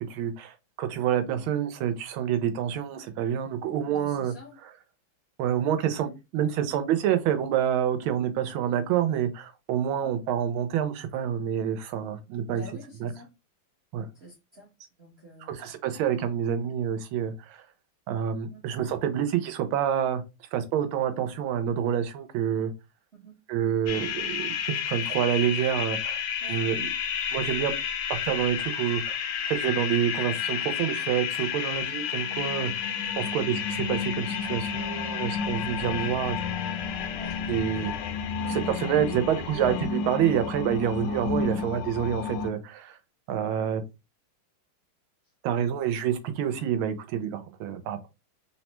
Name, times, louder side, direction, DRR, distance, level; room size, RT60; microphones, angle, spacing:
voice 1, 0.0-4.3 4.6-4.7 5.4-12.6 13.0-13.1 13.9-14.1 15.5-17.6 18.1-20.2 20.5-22.7 23.5-26.2 26.5-26.9 27.3-27.7 28.2-29.2 29.5-32.9 33.2-36.4 37.5-37.9 38.5-43.0 43.3-43.8 45.4-48.1, right 9 dB, 90° right, 1.5 m, -27 dB
voice 2, 3.8-4.6 10.0-10.2 12.5-13.3 14.1-14.7 15.0-15.6 18.4-18.6 23.1-23.4 26.4-26.6 33.2-33.4 37.1-37.4, right 2 dB, 55° right, 0.7 m, -47 dB
sound 1, 23.9-42.5, left 7 dB, 75° left, 1.1 m, -31 dB
3.7 x 2.1 x 2.9 m
omnidirectional pair, 2.2 m